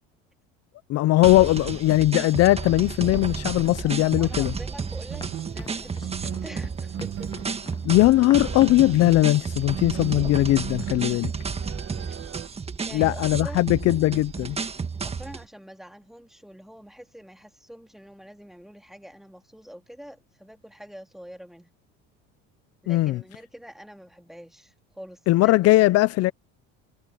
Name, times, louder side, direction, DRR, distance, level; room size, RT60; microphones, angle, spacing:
voice 1, 0.9-4.5 7.8-11.3 12.9-14.6 22.9-23.2 25.3-26.3, left 17 dB, 55° left, 0.7 m, -20 dB
sound 1, 1.2-15.5, right 5 dB, 20° right, 1.6 m, -32 dB
Run, 3.1-8.9, left 4 dB, 15° left, 1.3 m, -44 dB
voice 2, 3.8-7.3 12.9-13.8 14.9-21.7 22.8-26.0 26.3-26.4, equal, ahead, 2.9 m, -45 dB
sound 2, 5.1-12.5, right 10 dB, 45° right, 1.9 m, -38 dB
supercardioid pair, 105°, 30 cm